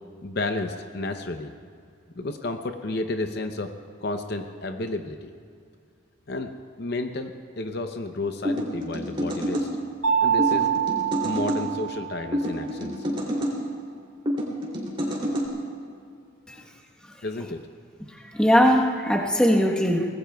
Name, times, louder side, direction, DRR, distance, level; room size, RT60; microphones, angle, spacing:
voice 1, 0.2-1.5 2.2-3.7 4.0-5.3 6.3-6.5 6.8-9.7 10.2-10.7 11.2-12.9 17.2-17.7, left 2 dB, 50° left, 6 dB, 0.7 m, -31 dB
sound 1, 8.4-9.7 10.4-11.6 12.3-13.6 14.3-15.5, equal, 25° right, 2.9 m, -28 dB
Mallet percussion, 10.0-12.5, right 8 dB, 80° right, 1.3 m, -25 dB
voice 2, 18.1-20.1, equal, 5° left, -1 dB, 1.2 m, -20 dB
24.5 x 19.5 x 2.3 m, 2.3 s
head